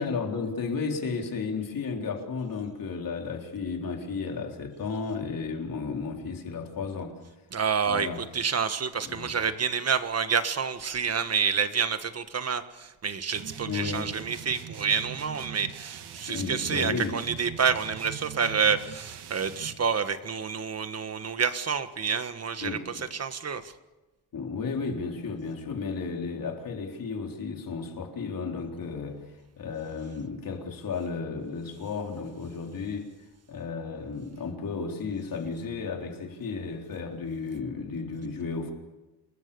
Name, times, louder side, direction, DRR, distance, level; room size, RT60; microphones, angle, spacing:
voice 1, 0.0-7.2 7.9-8.2 9.0-9.3 13.7-14.1 16.3-17.2 22.6-22.9 24.3-29.2 29.6-33.1 33.5-38.7, left 4 dB, 55° left, 4.0 m, -33 dB
voice 2, 7.5-23.7, right 6 dB, 35° right, 1.5 m, -28 dB
sound 1, 13.3-19.8, right 8 dB, 75° right, 1.8 m, -42 dB
28.0 x 21.0 x 7.0 m
cardioid pair, 130°, 40 cm